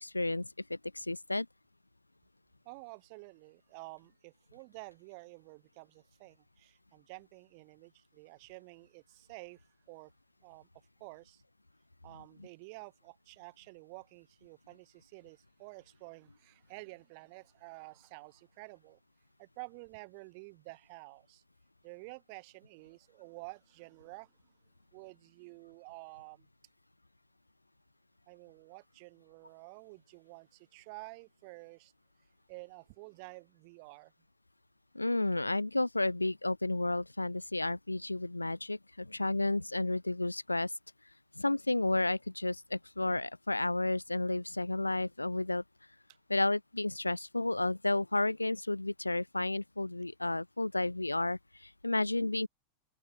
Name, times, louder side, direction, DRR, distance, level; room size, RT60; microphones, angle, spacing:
voice 1, 0.0-1.5 34.9-40.7 41.4-45.6 46.3-52.5, left 2 dB, 85° left, 0.5 m, -32 dB
voice 2, 2.7-10.1 10.4-10.7 11.0-11.4 12.0-19.0 19.4-21.4 21.8-24.3 24.9-26.5 28.3-31.9 32.5-34.1, right 30 dB, 45° right, 5.3 m, -50 dB
open air
figure-of-eight pair, 90°, 0 cm